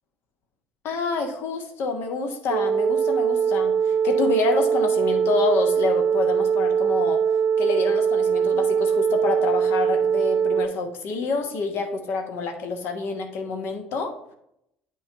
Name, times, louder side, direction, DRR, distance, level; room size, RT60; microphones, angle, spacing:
voice 1, 0.8-7.2 7.6-14.1, left 4 dB, 55° left, 6 dB, 1.1 m, -27 dB
sound 1, 2.5-10.7, right 7 dB, 55° right, 0.5 m, -22 dB
8.5 x 3.3 x 5.5 m, 0.77 s
figure-of-eight pair, 55°, 5 cm